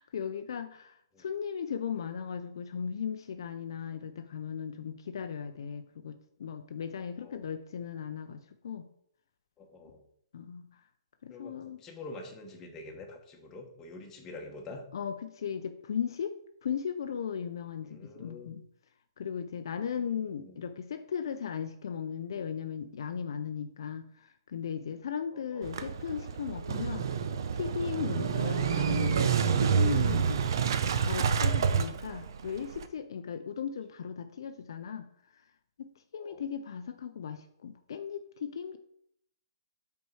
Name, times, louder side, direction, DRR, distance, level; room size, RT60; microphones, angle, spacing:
voice 1, 0.0-8.9 10.3-10.6 11.2-11.8 14.9-16.3 16.6-18.6 19.2-27.1 27.5-30.4 31.0-35.1 35.8-38.8, left 7 dB, 65° left, 8 dB, 0.5 m, -37 dB
voice 2, 7.1-7.5 9.6-10.0 11.3-14.8 17.8-18.5 20.0-20.6 25.3-25.7 36.2-36.4, left 2 dB, 20° left, 1 dB, 1.3 m, -47 dB
Motorcycle / Engine starting, 25.6-32.9, right 6 dB, 65° right, 0.6 m, -28 dB
5.3 x 4.5 x 4.8 m, 0.71 s
hypercardioid pair, 140°, 2 cm